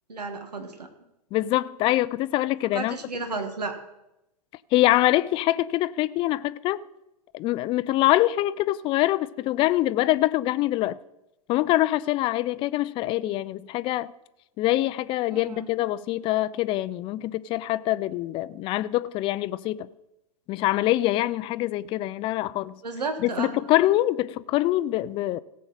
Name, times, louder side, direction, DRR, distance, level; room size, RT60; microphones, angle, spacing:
voice 1, 0.1-0.9 2.7-3.8 15.3-15.7 22.8-23.5, right 3 dB, 90° right, 1.6 m, -32 dB
voice 2, 1.3-2.9 4.7-6.8 7.3-11.0 11.5-14.1 14.6-19.9 20.5-22.8 23.2-25.4, left 16 dB, 25° left, 0.4 m, -24 dB
17.5 x 7.5 x 4.1 m
hypercardioid pair, 115°, 20 cm